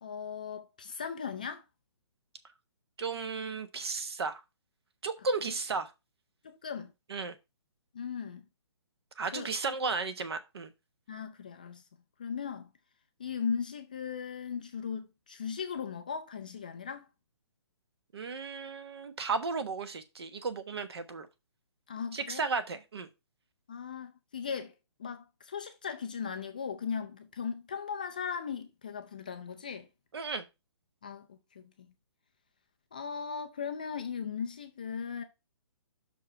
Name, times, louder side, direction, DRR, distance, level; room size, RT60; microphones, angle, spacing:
voice 1, 0.0-1.6 6.4-6.9 7.9-8.4 9.3-9.5 11.1-11.8 12.2-12.7 13.2-17.1 21.9-22.4 23.7-24.7 25.0-29.9 31.0-31.6 32.9-35.2, left 6 dB, 15° left, 0.3 m, -38 dB
voice 2, 3.0-4.4 5.0-5.9 7.1-7.3 9.2-10.7 18.1-21.3 22.1-23.1 30.1-30.4, right 4 dB, 60° right, 1.2 m, -34 dB
6.0 x 4.7 x 5.5 m
hypercardioid pair, 170°, 15 cm